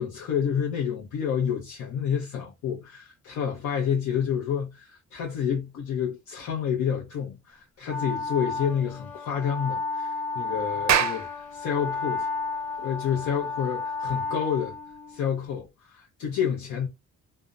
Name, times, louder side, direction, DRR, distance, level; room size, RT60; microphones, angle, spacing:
voice 1, 0.0-12.3 12.8-14.8 15.1-16.9, left 8 dB, 75° left, 0.7 m, -29 dB
Wind instrument woodwind instrument, 7.9-15.4, left 3 dB, 5° left, 0.8 m, -32 dB
Clapping, 10.8-15.5, right 9 dB, 65° right, 0.5 m, -30 dB
2.7 x 2.1 x 2.3 m
cardioid pair, 90°, 30 cm